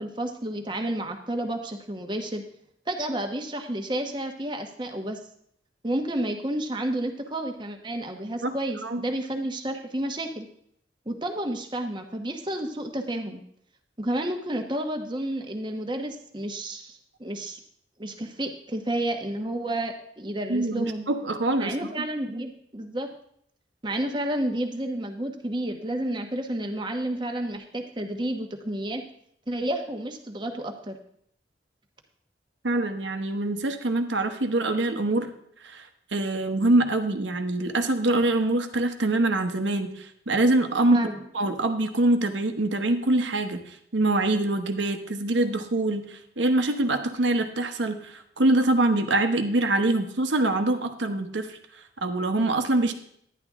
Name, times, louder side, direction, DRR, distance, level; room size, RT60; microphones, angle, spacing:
voice 1, 0.0-2.4 2.9-5.2 5.8-10.5 11.1-13.4 14.0-17.6 18.0-21.0 21.6-23.1 23.8-29.0 29.5-31.0 40.9-41.2, right 1 dB, 25° right, 4 dB, 1.1 m, -31 dB
voice 2, 8.4-9.0 20.5-21.7 32.6-35.3 35.6-41.0 41.3-51.6 52.0-52.9, right 2 dB, 90° right, 7 dB, 1.1 m, -24 dB
11.0 x 10.5 x 3.6 m, 0.68 s
head